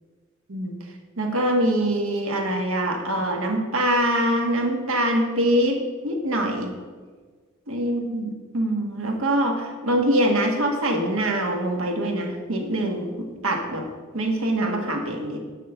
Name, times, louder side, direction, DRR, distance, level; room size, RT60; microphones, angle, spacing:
voice 1, 1.2-6.7 7.7-13.9 14.1-15.4, right 1 dB, 70° right, 2 dB, 1.6 m, -24 dB
6.9 x 6.6 x 7.9 m, 1.4 s
head